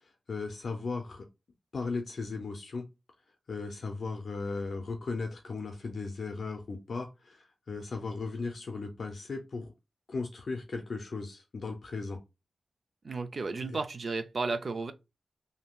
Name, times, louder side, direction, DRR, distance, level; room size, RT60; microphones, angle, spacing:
voice 1, 0.3-1.3 1.7-2.9 3.5-9.7 10.1-12.2 13.6-13.8, left 4 dB, 55° left, 0.5 m, -36 dB
voice 2, 13.0-14.9, right 3 dB, 45° right, 0.4 m, -33 dB
3.5 x 2.7 x 2.3 m
wide cardioid pair, 125°, 0 cm